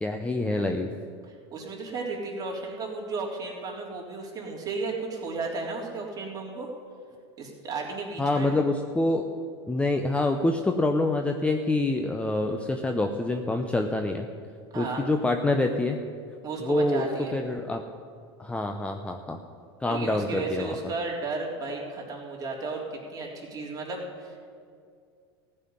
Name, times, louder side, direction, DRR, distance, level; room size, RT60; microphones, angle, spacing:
voice 1, 0.0-0.9 8.2-9.3 9.7-14.3 14.8-16.0 16.6-17.1 17.3-17.8 18.4-19.4 19.8-20.7, left 2 dB, 10° left, 4 dB, 0.7 m, -26 dB
voice 2, 1.3-6.7 7.4-8.5 14.7-15.1 16.4-17.4 19.9-24.4, right 3 dB, 25° right, -2 dB, 3.5 m, -34 dB
15.0 x 5.7 x 9.6 m, 2.2 s
hypercardioid pair, 105°, 14 cm